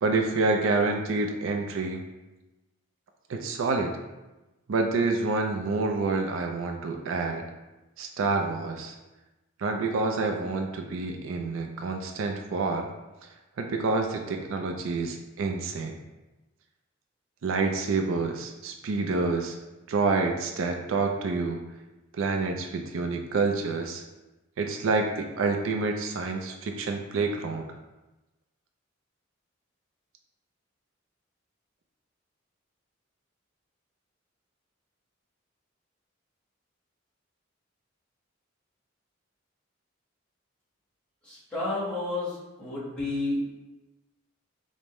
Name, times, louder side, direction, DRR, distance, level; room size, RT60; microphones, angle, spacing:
voice 1, 0.0-2.0 3.3-3.9 4.7-7.4 8.0-8.9 9.6-12.9 13.6-16.0 17.4-19.6 19.9-21.6 22.2-24.0 24.6-27.6, right 3 dB, 85° right, 3 dB, 0.4 m, -28 dB
voice 2, 41.3-42.3 42.6-43.3, left 2 dB, 5° left, -9 dB, 1.4 m, -30 dB
5.1 x 2.1 x 3.0 m, 1.1 s
head